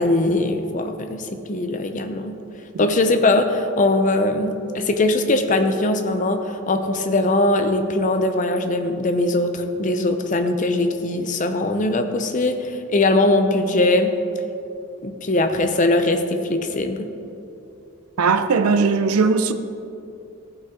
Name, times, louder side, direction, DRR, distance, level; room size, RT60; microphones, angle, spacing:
voice 1, 0.0-2.4 2.8-14.1 15.0-17.1, left 2 dB, 35° left, 0.6 m, -21 dB
voice 2, 18.2-19.5, right 4 dB, 85° right, 0.5 m, -18 dB
14.5 x 5.9 x 3.7 m
head